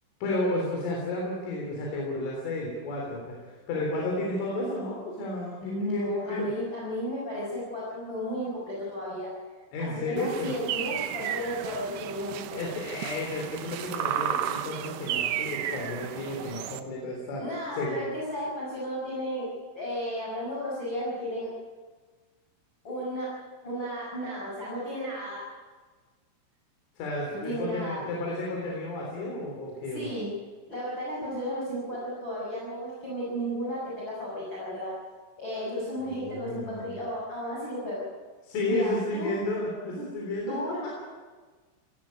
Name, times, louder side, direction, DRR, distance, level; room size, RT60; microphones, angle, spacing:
voice 1, 0.2-6.5 9.7-10.7 12.5-17.4 17.7-18.1 27.0-30.1 36.0-36.9 38.4-40.6 40.8-40.9, left 2 dB, 85° left, -2 dB, 6.2 m, -32 dB
voice 2, 5.6-9.3 9.8-12.6 17.4-19.5 19.7-21.5 22.8-23.3 23.6-25.5 27.4-28.0 29.9-30.3 30.7-34.9 35.4-38.0 38.7-39.3 40.5-40.8, equal, 25° left, -6 dB, 6.2 m, -34 dB
sound 1, 10.2-16.8, right 11 dB, 75° right, 2.6 m, -33 dB
18.5 x 16.5 x 9.8 m, 1.4 s
omnidirectional pair, 5.5 m